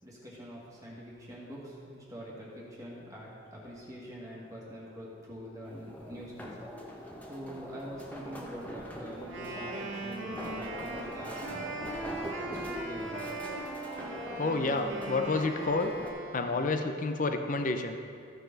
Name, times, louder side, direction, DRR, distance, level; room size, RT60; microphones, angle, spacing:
voice 1, 0.0-6.5 7.3-13.2, equal, 15° right, -5 dB, 1.8 m, -45 dB
sound 1, 5.6-16.1, equal, 10° left, 1.1 m, -43 dB
Wind instrument woodwind instrument, 9.2-16.9, right 2 dB, 75° right, 1.8 m, -39 dB
voice 2, 14.4-15.9 16.3-18.0, left 3 dB, 40° left, 6 dB, 0.5 m, -29 dB
14.5 x 6.6 x 4.0 m, 2.3 s
head